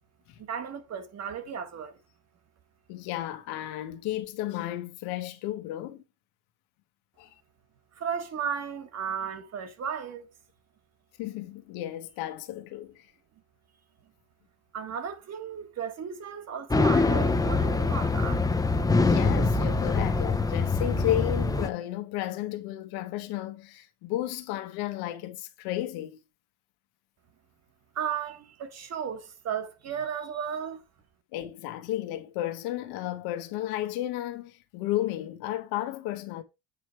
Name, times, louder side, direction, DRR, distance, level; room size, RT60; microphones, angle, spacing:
voice 1, 0.4-2.0 7.9-10.3 14.7-18.6 28.0-30.8, right 7 dB, 45° right, 1.7 m, -35 dB
voice 2, 2.9-6.0 7.2-7.3 11.2-13.1 19.0-26.2 31.3-36.4, left 14 dB, 90° left, 1.3 m, -33 dB
sound 1, 16.7-21.7, left 3 dB, 10° left, 0.7 m, -24 dB
8.3 x 4.7 x 4.6 m
cardioid pair, 130°, 36 cm